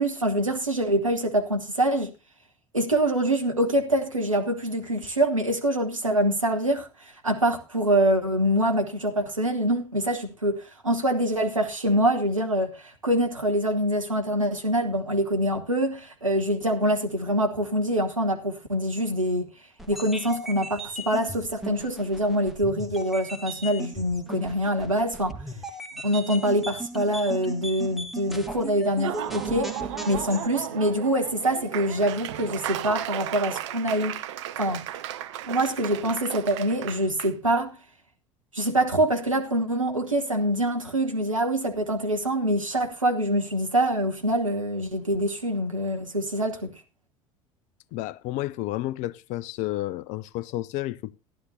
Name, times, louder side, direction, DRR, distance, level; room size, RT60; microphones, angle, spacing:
voice 1, 0.0-2.1 2.7-19.5 19.9-25.4 26.0-29.7 30.1-34.2 34.6-34.9 35.5-37.8 38.5-46.8, right 1 dB, 90° right, 1.2 m, -25 dB
sound 1, 19.8-30.5, right 1 dB, ahead, 1.4 m, -37 dB
Laughter / Applause, 28.9-37.3, right 12 dB, 65° right, 0.6 m, -35 dB
voice 2, 47.9-51.2, left 16 dB, 50° left, 0.5 m, -31 dB
15.0 x 11.0 x 2.7 m
figure-of-eight pair, 65°, 16 cm